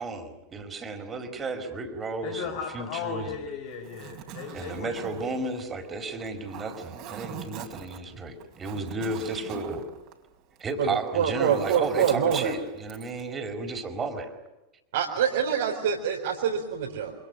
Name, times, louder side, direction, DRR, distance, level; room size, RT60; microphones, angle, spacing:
voice 1, 0.0-3.5 4.5-9.9 10.6-14.4, right 3 dB, 20° right, 6 dB, 4.9 m, -33 dB
voice 2, 2.2-5.0, left 6 dB, 50° left, 6 dB, 4.3 m, -36 dB
Zipper (clothing), 3.7-10.8 11.1-13.3, right 9 dB, 40° right, 4.4 m, -43 dB
voice 3, 10.8-12.5 14.9-17.1, right 7 dB, 60° right, -2 dB, 4.4 m, -25 dB
28.5 x 27.0 x 6.7 m, 0.98 s
figure-of-eight pair, 90°, 0 cm